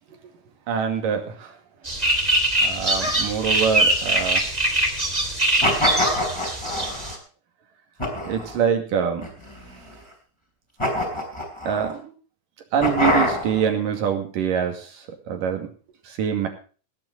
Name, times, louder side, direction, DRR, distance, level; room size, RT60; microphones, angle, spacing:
voice 1, 0.7-1.5 2.6-4.4 8.3-9.2 11.7-12.1 12.7-14.7 15.3-15.7 16.2-16.5, right 7 dB, 85° right, 5 dB, 4.0 m, -24 dB
sound 1, 1.8-7.1, right 1 dB, 15° right, 2.5 m, -22 dB
sound 2, 5.6-7.1 8.0-8.6 9.2-9.9 10.8-11.9 12.8-13.7, left 1 dB, 10° left, 4.3 m, -25 dB
18.5 x 10.5 x 4.1 m, 0.39 s
omnidirectional pair, 3.7 m